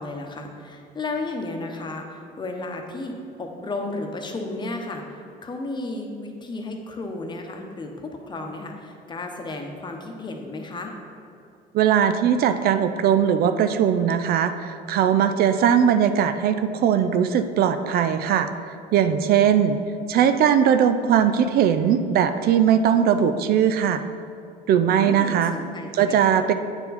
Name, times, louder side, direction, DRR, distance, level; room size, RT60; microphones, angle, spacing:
voice 1, 0.0-10.9 24.9-26.4, left 2 dB, 25° left, 3 dB, 0.9 m, -33 dB
voice 2, 11.7-18.5 18.9-19.8 20.1-24.0 24.7-25.6 25.9-26.5, right 8 dB, 65° right, 9 dB, 0.4 m, -20 dB
8.7 x 4.5 x 4.1 m, 2.5 s
cardioid pair, 110°, 17 cm